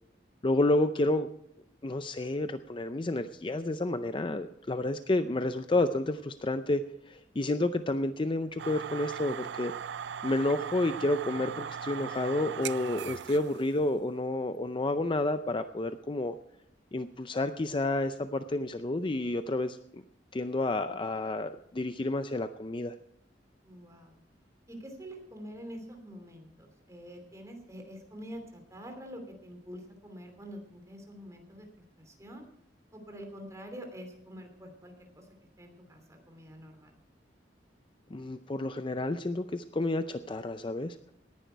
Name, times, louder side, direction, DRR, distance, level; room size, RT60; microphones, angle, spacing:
voice 1, 0.4-1.3 1.8-6.8 7.1-9.7 10.2-16.3 16.9-20.0 20.3-22.9 38.1-41.0, left 2 dB, 30° left, 10 dB, 0.5 m, -30 dB
sound 1, 8.6-13.8, right 8 dB, 80° right, 0.4 m, -39 dB
voice 2, 23.6-24.2 24.7-32.5 32.9-35.3 35.6-37.0, equal, 20° right, 3 dB, 3.0 m, -46 dB
18.5 x 10.5 x 4.6 m, 0.74 s
head